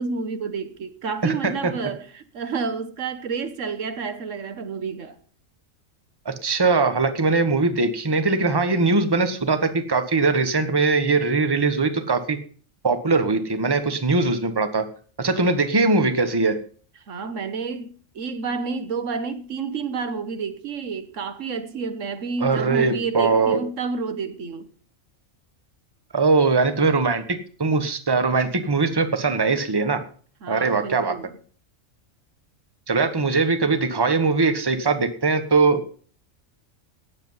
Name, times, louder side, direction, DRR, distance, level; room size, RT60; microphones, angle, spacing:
voice 1, 0.0-5.2 17.1-24.7 30.4-31.3, right 5 dB, 75° right, 1.4 m, -30 dB
voice 2, 1.2-1.7 6.2-12.4 12.8-14.8 15.2-16.5 22.4-23.6 26.1-27.2 27.6-30.0 30.5-31.1 32.9-35.8, right 3 dB, 20° right, 1.2 m, -21 dB
17.5 x 7.8 x 5.6 m
omnidirectional pair, 1.3 m